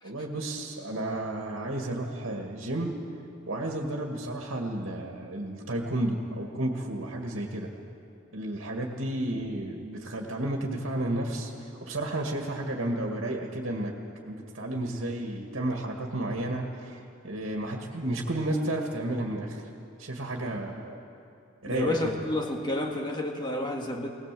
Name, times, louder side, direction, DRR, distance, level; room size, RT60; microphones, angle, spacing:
voice 1, 0.0-2.9 3.5-7.7 8.3-17.0 17.2-19.6 20.0-21.0 21.6-22.1, right 1 dB, 75° right, 1 dB, 2.0 m, -32 dB
voice 2, 21.7-24.1, left 1 dB, 20° left, 2 dB, 1.8 m, -30 dB
21.0 x 18.5 x 7.7 m, 2.6 s
head